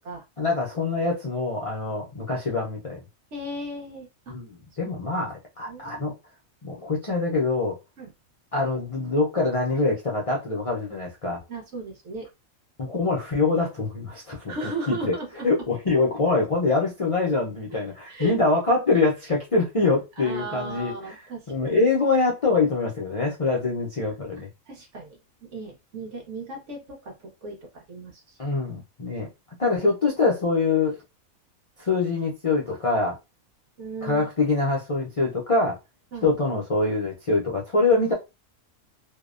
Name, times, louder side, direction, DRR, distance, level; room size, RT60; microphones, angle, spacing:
voice 1, 0.4-3.0 4.3-6.1 6.6-7.8 8.5-11.4 12.8-14.5 14.9-15.1 15.4-20.9 21.5-24.5 28.4-29.3 29.6-31.0 31.8-33.2 34.0-35.8 36.2-38.1, left 3 dB, 60° left, 0.3 m, -24 dB
voice 2, 3.3-4.3 5.0-5.1 5.7-6.2 8.0-8.1 11.5-12.3 14.5-15.5 17.7-17.8 18.1-18.4 20.2-21.8 24.4-28.4 33.8-34.3 36.1-36.3, right 2 dB, 60° right, 1.1 m, -36 dB
2.8 x 2.0 x 2.3 m
omnidirectional pair, 1.4 m